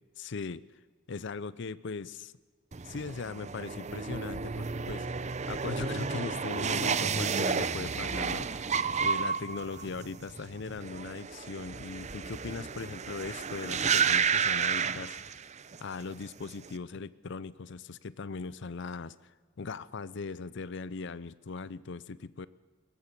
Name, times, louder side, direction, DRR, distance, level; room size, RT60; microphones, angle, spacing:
voice 1, 0.2-0.6 1.1-2.3 2.8-5.1 5.5-8.7 9.0-15.2 15.8-22.5, left 4 dB, 60° left, 17 dB, 0.6 m, -39 dB
sound 1, 2.7-15.8 16.1-16.7, right 6 dB, 35° right, 0.7 m, -31 dB
22.0 x 18.5 x 8.2 m, 1.4 s
head